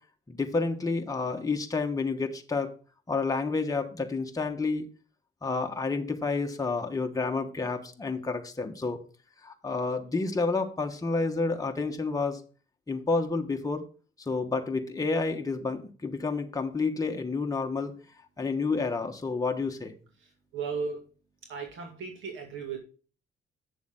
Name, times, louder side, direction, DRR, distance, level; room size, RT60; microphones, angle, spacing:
voice 1, 0.3-2.7 3.1-4.9 5.4-9.0 9.4-12.4 12.9-13.8 14.3-17.9 18.4-19.9, left 3 dB, 15° left, 3 dB, 1.2 m, -29 dB
voice 2, 20.5-21.0 21.5-22.8, right 5 dB, 75° right, 2 dB, 2.2 m, -35 dB
8.9 x 6.9 x 3.7 m, 0.37 s
cardioid pair, 90°, 20 cm